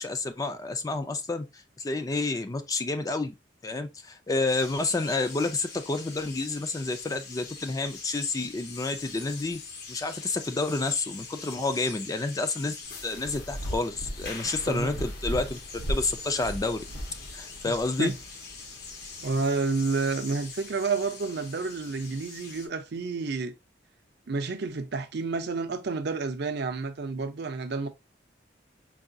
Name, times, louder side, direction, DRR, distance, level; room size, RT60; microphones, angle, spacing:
voice 1, 0.0-3.3 3.6-9.6 9.9-12.7 13.0-16.8 17.3-18.1, left 3 dB, 20° left, 0.3 m, -29 dB
sound 1, 4.5-22.7, left 4 dB, 60° left, 0.8 m, -44 dB
sound 2, 12.8-19.3, equal, 75° left, 1.3 m, -37 dB
voice 2, 17.7-18.2 19.2-23.5 24.3-27.9, right 4 dB, 60° right, 0.5 m, -30 dB
4.6 x 2.3 x 2.5 m
head